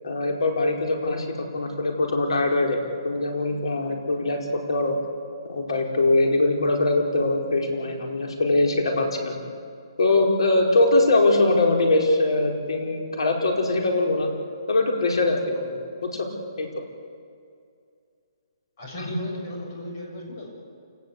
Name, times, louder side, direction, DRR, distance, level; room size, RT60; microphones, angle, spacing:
voice 1, 0.0-4.4 4.7-4.9 5.4-9.4 10.0-14.3 14.7-15.8 16.0-16.3 16.6-16.7 19.0-19.1, left 2 dB, 75° left, 2 dB, 4.8 m, -22 dB
voice 2, 18.8-20.5, left 1 dB, 35° left, -1 dB, 7.4 m, -35 dB
28.0 x 18.5 x 8.2 m, 2.3 s
hypercardioid pair, 175°, 3 cm